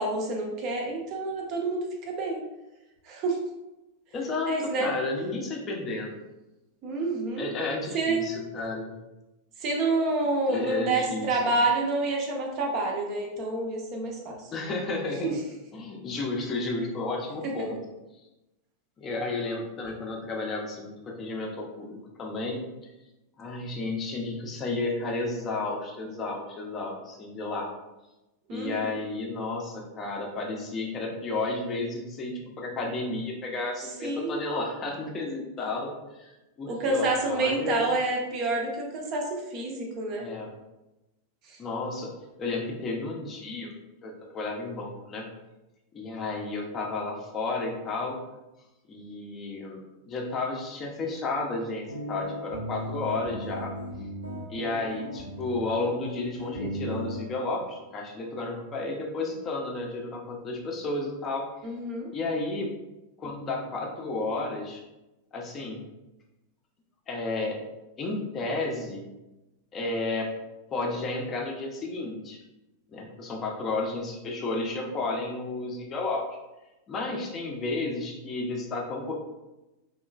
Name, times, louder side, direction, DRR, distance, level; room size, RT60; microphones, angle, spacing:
voice 1, 0.0-2.4 3.1-3.4 4.5-4.9 6.8-7.5 7.9-8.3 9.6-14.5 15.2-15.3 17.6-17.7 28.5-29.0 34.0-34.4 36.7-40.3 61.6-62.1, right 2 dB, 40° right, 1 dB, 0.5 m, -28 dB
voice 2, 4.1-6.2 7.4-9.0 10.5-11.5 14.5-15.4 15.7-17.8 19.0-22.6 23.4-27.7 28.5-37.9 40.2-40.5 41.6-42.1 42.4-43.7 44.0-45.3 45.9-48.2 48.9-49.8 50.1-53.7 54.5-61.5 62.1-62.7 63.2-64.8 65.3-65.8 67.1-67.6 68.0-69.0 69.7-70.3 70.7-72.4 72.9-76.3 76.9-79.1, left 3 dB, 25° left, 0 dB, 0.5 m, -32 dB
sound 1, 51.9-57.2, equal, 85° right, 0.5 m, -36 dB
2.9 x 2.2 x 2.3 m, 0.99 s
figure-of-eight pair, 90°, 0 cm